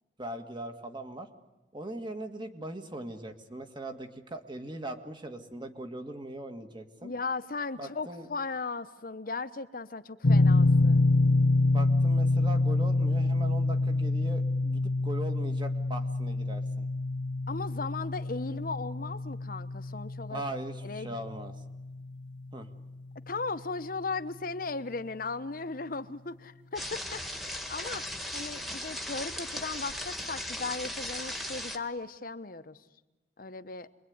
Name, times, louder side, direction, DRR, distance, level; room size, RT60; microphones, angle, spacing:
voice 1, 0.2-1.3 1.7-7.1 7.8-8.3 11.6-16.9 20.3-21.5 22.5-22.7, right 1 dB, 25° right, 6 dB, 1.9 m, -40 dB
voice 2, 7.0-11.1 17.5-20.4 20.8-21.2 23.3-32.8 33.4-33.9, left 3 dB, 50° left, 11 dB, 1.1 m, -37 dB
sound 1, 10.2-23.1, left 2 dB, 90° left, 0.9 m, -27 dB
sound 2, 26.8-31.8, left 1 dB, ahead, 1.8 m, -37 dB
27.5 x 22.5 x 9.6 m, 1.1 s
head